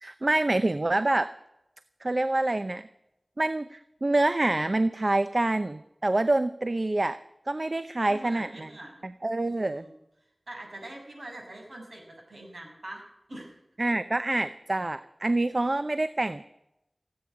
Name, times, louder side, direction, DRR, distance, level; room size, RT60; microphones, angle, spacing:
voice 1, 0.0-1.3 2.0-2.9 3.4-7.2 7.5-8.7 9.0-9.9 13.8-16.4, right 2 dB, 50° right, 12 dB, 0.7 m, -26 dB
voice 2, 8.0-9.1 9.4-9.9 10.5-13.0 13.3-13.6, right 1 dB, 75° right, 0 dB, 6.5 m, -44 dB
17.0 x 8.9 x 8.9 m, 0.84 s
wide cardioid pair, 45°, 0 cm